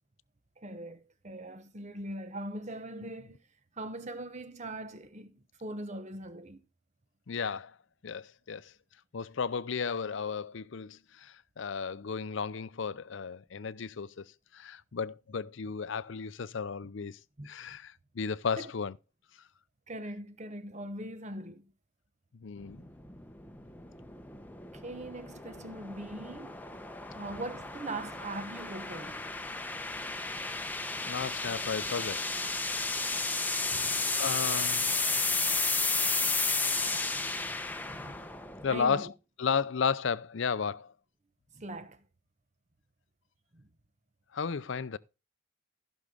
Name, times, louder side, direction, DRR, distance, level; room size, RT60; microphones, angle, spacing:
voice 1, 0.6-3.4 3.8-6.6 16.8-16.9 17.4-17.8 18.6-18.7 19.9-21.7 24.7-26.6 27.1-29.3 33.7-34.0 36.5-36.6 37.8-38.3 38.7-39.1 41.5-42.0 43.5-43.7, right 1 dB, 35° right, 1.1 m, -41 dB
voice 2, 7.3-7.7 8.0-8.7 9.1-14.3 14.5-17.2 17.4-18.9 22.4-22.8 31.0-32.3 32.6-32.9 34.2-35.6 38.6-39.1 39.4-40.9 44.3-45.0, left 6 dB, 65° left, 0.5 m, -34 dB
sound 1, 22.6-38.9, left 3 dB, 10° left, 0.9 m, -33 dB
15.0 x 6.3 x 3.9 m
head